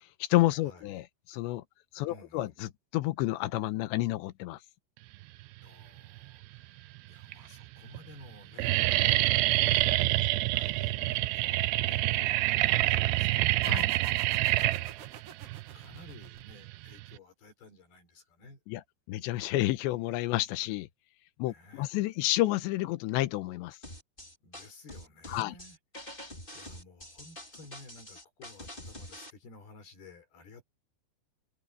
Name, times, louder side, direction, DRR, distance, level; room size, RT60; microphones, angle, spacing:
voice 1, 0.2-1.6 1.9-4.6 13.7-13.9 18.7-18.8 19.1-20.9 21.4-23.8 25.3-25.6, left 17 dB, 85° left, 3.1 m, -30 dB
voice 2, 2.1-2.6 5.6-10.1 10.5-14.2 14.9-18.6 21.5-21.9 24.4-25.8 26.5-30.6, left 3 dB, 60° left, 6.1 m, -54 dB
sound 1, 6.0-6.6 7.2-7.3 7.6-17.2, right 18 dB, 80° right, 2.7 m, -27 dB
sound 2, 13.6-16.9, right 6 dB, 50° right, 3.7 m, -48 dB
sound 3, 23.8-29.3, left 1 dB, 10° left, 4.8 m, -46 dB
omnidirectional pair, 5.2 m